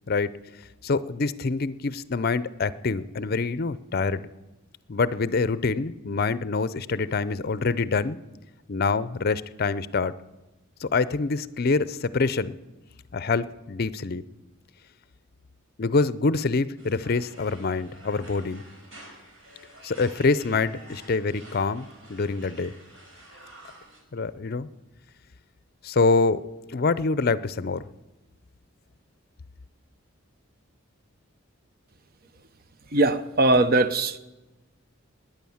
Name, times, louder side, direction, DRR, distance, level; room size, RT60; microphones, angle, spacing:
voice 1, 0.8-4.2 4.9-8.2 8.7-10.1 10.8-12.6 13.1-14.2 15.8-18.6 19.8-22.7 24.1-24.7 25.8-27.8, left 4 dB, 50° left, 17 dB, 0.5 m, -25 dB
sound 1, 16.8-24.0, right 1 dB, 75° right, 5.0 m, -49 dB
voice 2, 32.9-34.2, right 2 dB, 45° right, 12 dB, 0.7 m, -20 dB
20.0 x 9.1 x 7.1 m, 1.1 s
head